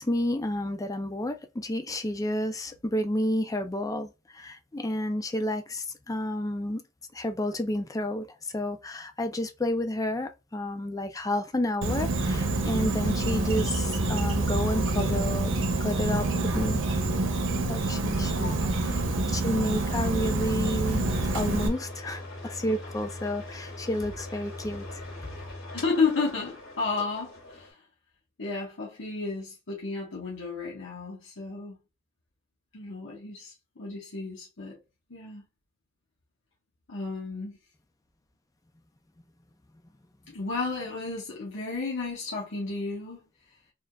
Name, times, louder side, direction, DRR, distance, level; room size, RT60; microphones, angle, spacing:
voice 1, 0.0-6.8 7.1-8.3 8.5-16.3 16.5-16.8 17.7-18.6 19.3-25.0, left 1 dB, 15° left, 0.4 m, -30 dB
Insect, 11.8-21.7, right 2 dB, 65° right, 0.9 m, -27 dB
voice 2, 18.3-19.0 25.7-27.8 28.4-31.8 32.7-34.8 35.1-35.5 36.9-37.6 40.3-43.2, left 4 dB, 65° left, 1.4 m, -32 dB
sound 1, 20.8-27.7, left 2 dB, 80° left, 2.3 m, -41 dB
4.2 x 3.6 x 2.3 m
head